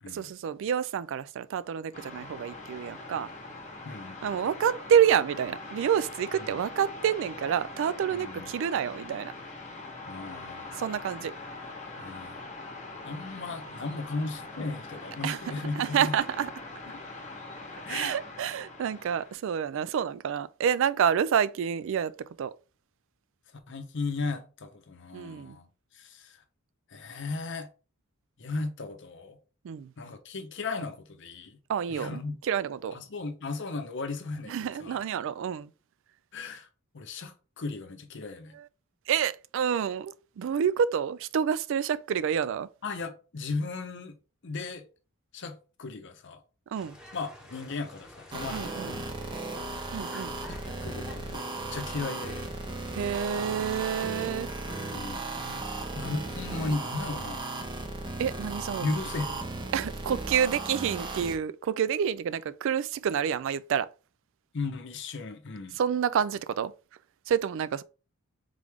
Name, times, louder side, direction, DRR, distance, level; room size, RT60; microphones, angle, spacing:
voice 1, 0.1-3.3 4.2-9.3 10.8-11.3 15.2-15.4 15.8-16.5 17.9-22.1 22.4-22.5 25.1-25.6 29.6-29.9 31.7-32.9 34.5-35.7 38.5-38.7 39.1-42.7 46.7-47.0 48.5-49.0 49.9-50.4 52.9-54.5 58.2-58.8 59.7-63.9 65.8-66.7 67.3-67.8, right 8 dB, 60° right, 0.3 m, -28 dB
sound 1, 1.9-19.3, left 2 dB, 35° left, 1.0 m, -43 dB
voice 2, 3.8-4.3 6.5-6.6 8.1-8.5 10.0-10.8 12.0-12.4 13.0-16.1 16.9-17.0 17.8-18.2 23.7-25.7 25.9-26.4 26.9-27.7 28.4-29.4 30.0-31.6 31.9-32.4 32.9-35.0 36.3-36.7 36.9-38.6 42.8-44.1 44.4-44.8 45.3-46.4 47.1-49.1 49.5-49.7 50.5-51.4 51.7-52.5 54.6-55.6 55.9-57.6 58.8-59.7 64.5-65.8, left 3 dB, 55° left, 0.7 m, -36 dB
sound 2, 46.7-54.3, left 1 dB, 5° right, 1.0 m, -49 dB
sound 3, 48.3-61.4, right 2 dB, 20° right, 0.6 m, -36 dB
3.7 x 3.3 x 3.5 m
head